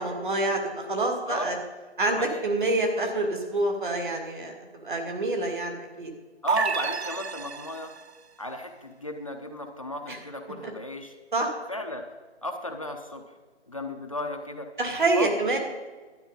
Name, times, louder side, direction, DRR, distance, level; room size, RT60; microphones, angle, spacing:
voice 1, 0.0-1.6 2.0-4.5 4.8-6.1 10.1-10.2 11.3-11.6 14.8-15.6, right 2 dB, 45° right, 3 dB, 2.2 m, -27 dB
voice 2, 6.4-7.9 8.4-11.1 11.7-12.1 12.4-13.2 13.7-14.7 15.1-15.3, left 1 dB, 30° left, 3 dB, 0.7 m, -35 dB
sound 1, 6.5-8.1, right 6 dB, 70° right, 0.8 m, -29 dB
12.0 x 9.6 x 5.4 m, 1.3 s
figure-of-eight pair, 170°, 34 cm